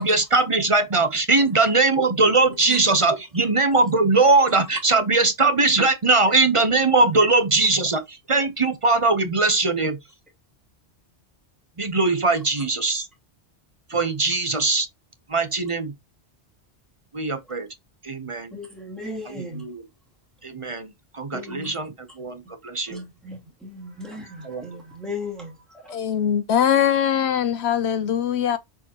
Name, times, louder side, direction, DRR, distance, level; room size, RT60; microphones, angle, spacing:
voice 1, 0.0-10.0 11.8-13.1 13.9-14.9 15.3-15.9 17.1-17.7 18.0-18.5 19.6-19.8 20.4-23.0 24.4-24.6, right 3 dB, 35° right, 0.8 m, -21 dB
voice 2, 18.5-19.7 21.3-21.8 22.4-22.5 22.9-26.0, left 2 dB, ahead, 2.5 m, -37 dB
voice 3, 25.9-28.6, left 9 dB, 75° left, 0.9 m, -21 dB
7.0 x 4.8 x 2.9 m
omnidirectional pair, 1.1 m